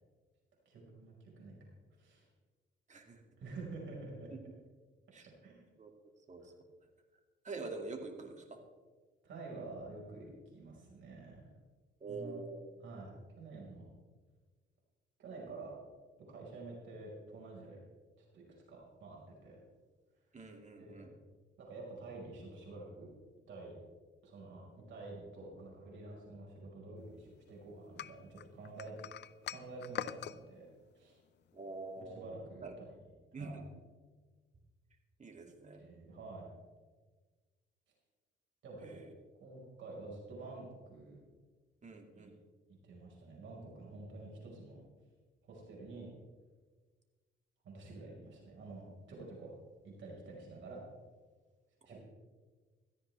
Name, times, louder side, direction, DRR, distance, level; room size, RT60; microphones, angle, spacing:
voice 1, 0.6-1.6 2.0-2.3 3.4-4.3 5.4-5.7 9.2-11.5 12.1-12.3 12.8-13.1 13.4-13.9 15.2-15.7 16.3-17.8 18.2-19.6 20.8-21.1 21.6-23.1 23.5-23.7 24.2-29.0 29.5-30.7 30.9-31.2 31.9-32.7 33.3-33.6 35.8-36.5 38.6-39.0 39.4-41.2 42.1-42.3 42.7-44.8 45.4-46.1 47.6-49.5 49.8-50.8 51.8-52.0, right 3 dB, 70° right, -2 dB, 5.0 m, -49 dB
voice 2, 2.9-3.2 4.3-4.4 5.1-5.3 5.8-5.9 6.3-6.4 7.4-8.6 12.0-12.6 20.3-21.1 31.5-32.3 32.6-32.7 33.3-33.7 35.2-35.8 38.8-39.1 41.8-42.3 51.9-52.0, right 3 dB, 35° right, 4 dB, 2.4 m, -45 dB
sound 1, 28.0-30.4, left 11 dB, 60° left, 0.5 m, -43 dB
17.0 x 13.5 x 3.4 m, 1.4 s
cardioid pair, 90°, 20 cm